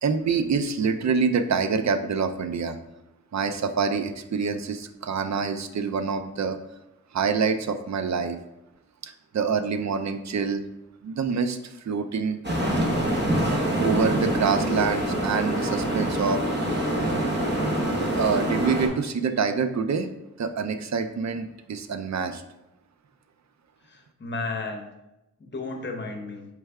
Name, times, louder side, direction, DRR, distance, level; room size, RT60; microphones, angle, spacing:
voice 1, 0.0-2.8 3.3-6.6 7.1-8.4 9.0-10.6 11.0-12.4 13.8-16.4 18.1-20.1 20.4-22.4, right 5 dB, 60° right, 8 dB, 0.5 m, -26 dB
sound 1, 12.4-18.9, right 1 dB, 35° right, 1.0 m, -25 dB
voice 2, 23.8-24.9 25.4-26.5, left 3 dB, 35° left, 2 dB, 0.8 m, -33 dB
4.4 x 3.3 x 3.5 m, 0.91 s
wide cardioid pair, 100°, 32 cm